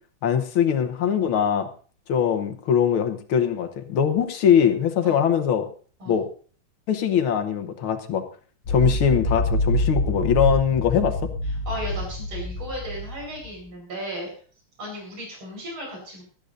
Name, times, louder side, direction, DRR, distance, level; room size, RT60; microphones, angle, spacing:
voice 1, 0.2-1.7 2.1-5.7 6.1-6.3 6.9-8.2 8.7-11.1, left 8 dB, 80° left, 7 dB, 2.0 m, -22 dB
sound 1, 8.6-13.5, left 1 dB, 60° left, 2.1 m, -26 dB
voice 2, 11.5-14.3 14.8-16.2, equal, 75° right, -1 dB, 5.6 m, -35 dB
18.5 x 13.0 x 2.6 m, 0.42 s
omnidirectional pair, 2.3 m